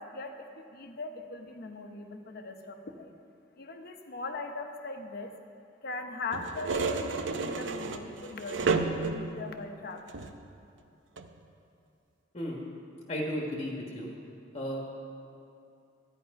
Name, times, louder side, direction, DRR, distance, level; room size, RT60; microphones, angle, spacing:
voice 1, 0.0-3.1 3.6-5.3 5.8-10.3, left 3 dB, 55° left, 5 dB, 0.9 m, -40 dB
sound 1, 6.3-9.4 10.1-10.5 11.2-11.3, right 4 dB, 75° right, 0.7 m, -31 dB
voice 2, 13.1-14.1 14.5-15.1, equal, 35° left, -2 dB, 1.3 m, -34 dB
13.0 x 9.9 x 5.2 m, 2.6 s
head